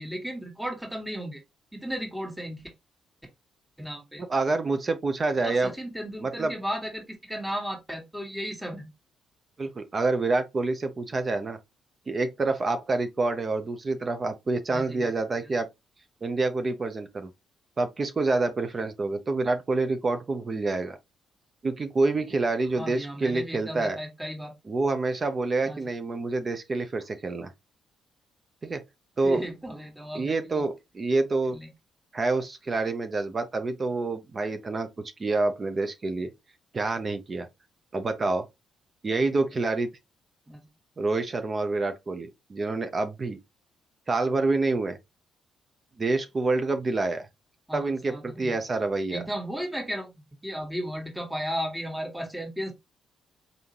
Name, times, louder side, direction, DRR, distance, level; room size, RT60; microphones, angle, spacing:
voice 1, 0.0-1.4 1.7-2.6 3.8-4.2 5.4-8.9 14.7-15.1 15.4-15.5 22.8-24.5 25.6-25.8 29.2-30.6 31.5-31.7 40.5-40.6 47.7-48.6 49.1-52.7, equal, 5° right, 1.5 m, -35 dB
voice 2, 4.3-5.7 6.2-6.5 9.6-11.6 12.1-15.7 16.2-17.3 17.8-21.0 21.6-24.0 24.7-27.5 28.6-28.8 29.2-29.4 30.1-31.6 32.1-34.9 35.2-36.3 36.7-37.5 37.9-38.4 39.0-39.9 41.0-43.4 44.1-45.0 46.0-47.3 47.7-49.2, right 3 dB, 40° right, 0.7 m, -27 dB
4.0 x 3.5 x 2.9 m
supercardioid pair, 55°, 0 cm